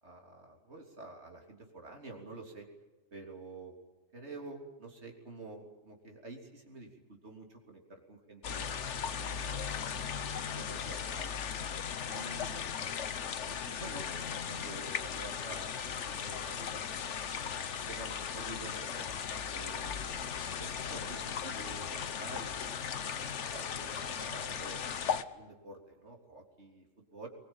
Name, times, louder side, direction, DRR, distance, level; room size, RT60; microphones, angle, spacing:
voice 1, 0.0-2.7 3.1-3.8 4.1-8.8 9.2-10.0 10.4-11.4 12.1-12.7 13.5-17.0 17.4-19.1 19.5-22.7 23.4-24.9 25.2-27.3, right 2 dB, 70° right, 1 dB, 3.7 m, -49 dB
sound 1, 8.4-25.2, left 7 dB, 85° left, 1.3 m, -37 dB
22.5 x 21.0 x 9.1 m, 1.2 s
omnidirectional pair, 1.2 m